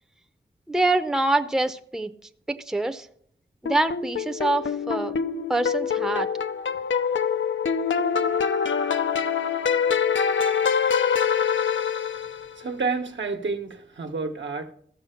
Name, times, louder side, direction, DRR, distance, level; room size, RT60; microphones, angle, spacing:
voice 1, 0.7-2.1 2.5-3.1 3.6-5.1 5.5-6.3, right 2 dB, 5° right, 0.6 m, -25 dB
sound 1, 3.7-12.5, left 6 dB, 90° left, 0.6 m, -25 dB
voice 2, 12.6-14.7, right 4 dB, 75° right, 1.2 m, -29 dB
14.5 x 6.8 x 5.7 m
wide cardioid pair, 105°, 19 cm